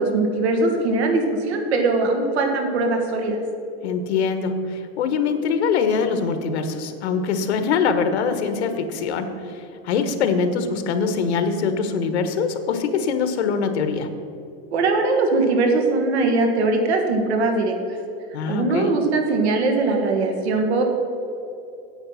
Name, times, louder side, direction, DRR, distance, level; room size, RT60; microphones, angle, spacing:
voice 1, 0.0-3.4 14.7-17.7 18.5-20.8, right 3 dB, 80° right, 3 dB, 1.8 m, -21 dB
voice 2, 3.8-14.1 18.3-18.9, left 5 dB, 85° left, 8 dB, 1.2 m, -23 dB
8.9 x 8.3 x 5.6 m, 2.8 s
supercardioid pair, 175°, 32 cm